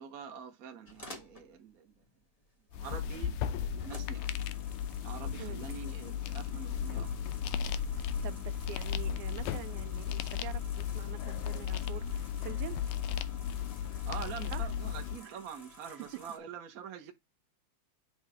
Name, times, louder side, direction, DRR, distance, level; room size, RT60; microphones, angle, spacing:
voice 1, 0.0-1.9 2.7-4.3 5.0-7.1 13.8-17.1, right 7 dB, 55° right, 0.9 m, -45 dB
sound 1, 0.8-16.4, left 1 dB, 30° left, 0.7 m, -54 dB
sound 2, 2.7-15.2, left 8 dB, 85° left, 2.1 m, -35 dB
voice 2, 5.4-5.9 8.0-12.8 14.5-14.7 15.4-15.5, right 14 dB, 85° right, 2.1 m, -46 dB
8.2 x 3.2 x 4.9 m
omnidirectional pair, 3.4 m